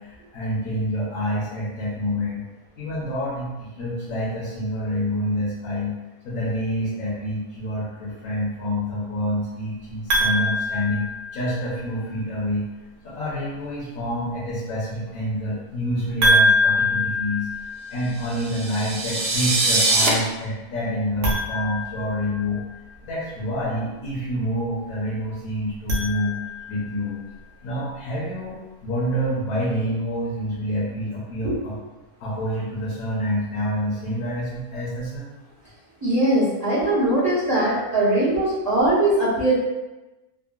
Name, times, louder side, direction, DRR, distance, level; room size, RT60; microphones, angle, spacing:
voice 1, 0.0-2.4 2.8-5.9 6.2-12.6 13.0-17.5 17.9-22.6 23.0-26.4 26.7-27.2 27.6-31.8 32.2-35.3, equal, 70° left, -8 dB, 1.2 m, -27 dB
sound 1, 10.1-11.8 16.2-18.2 21.1-22.7 25.6-26.9, left 1 dB, 90° right, 1.2 m, -24 dB
sound 2, 18.2-20.1, right 2 dB, 60° right, 0.6 m, -23 dB
voice 2, 36.0-39.5, right 1 dB, 20° right, -11 dB, 0.6 m, -20 dB
3.6 x 2.1 x 2.3 m, 1.1 s
omnidirectional pair, 1.5 m